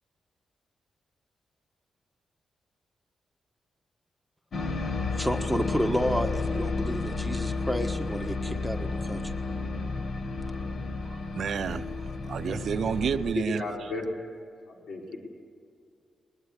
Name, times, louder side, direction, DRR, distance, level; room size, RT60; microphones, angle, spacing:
sound 1, 4.5-13.3, left 3 dB, 50° left, 1.6 m, -32 dB
voice 1, 5.2-9.3, equal, 5° left, 1.4 m, -30 dB
voice 2, 11.1-11.9 12.2-13.6, right 7 dB, 60° right, 0.7 m, -30 dB
voice 3, 13.1-14.1 14.7-15.2, left 3 dB, 70° left, 4.7 m, -35 dB
21.5 x 20.5 x 8.3 m
wide cardioid pair, 150°, 0 cm